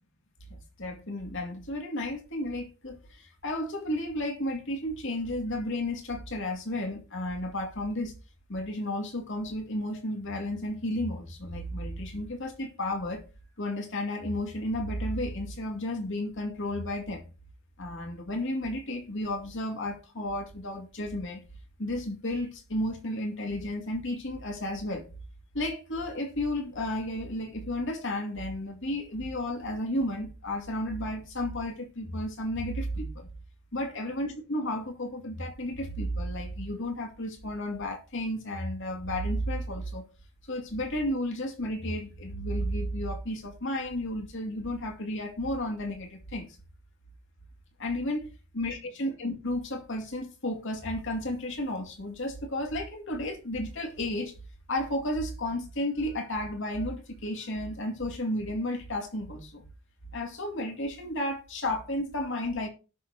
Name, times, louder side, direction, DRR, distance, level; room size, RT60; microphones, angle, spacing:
voice 1, 0.8-8.1 8.5-13.2 13.6-17.2 17.8-21.4 21.8-25.1 25.5-33.3 33.7-40.1 40.5-46.5 47.8-54.3 54.7-59.6 60.1-62.7, left 1 dB, 60° left, 2.4 m, -32 dB
18.0 x 6.7 x 2.9 m
head